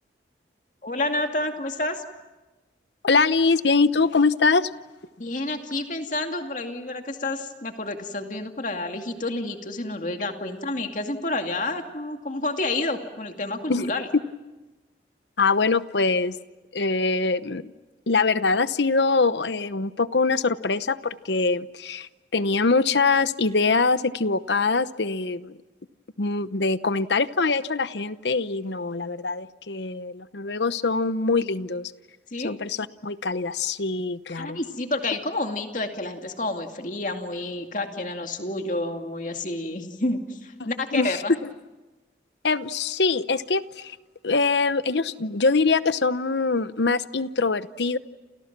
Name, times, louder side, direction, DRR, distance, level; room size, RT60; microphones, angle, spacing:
voice 1, 0.8-2.0 5.2-14.1 32.3-32.6 34.3-41.3, left 2 dB, 45° left, 5 dB, 2.4 m, -29 dB
voice 2, 3.0-4.7 13.7-13.9 15.4-16.4 16.7-17.7 18.1-25.6 26.2-31.9 32.4-34.6 40.9-41.2 42.4-44.0 44.2-48.0, left 4 dB, 75° left, 14 dB, 0.9 m, -23 dB
29.5 x 29.0 x 6.1 m, 1.2 s
head